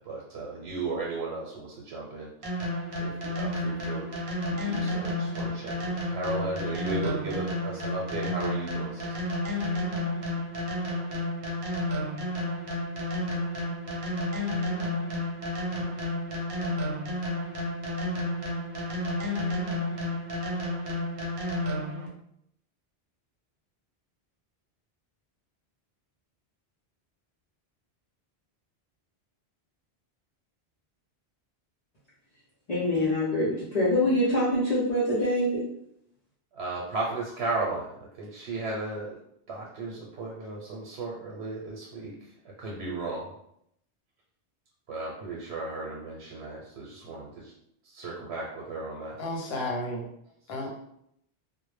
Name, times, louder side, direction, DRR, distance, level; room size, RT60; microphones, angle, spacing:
voice 1, 0.0-2.7 3.0-4.1 4.5-9.0 36.5-37.9 38.2-39.2 39.5-42.1 42.4-43.3 44.9-47.5 47.8-49.2 50.5-50.8, right 3 dB, 90° right, 0.9 m, -35 dB
sound 1, 2.4-22.1, left 1 dB, 60° right, 0.8 m, -31 dB
voice 2, 32.7-35.6, left 1 dB, 45° left, 0.6 m, -25 dB
voice 3, 49.2-50.1 50.5-50.8, left 1 dB, 70° left, 0.9 m, -32 dB
2.1 x 2.0 x 3.1 m
omnidirectional pair, 1.1 m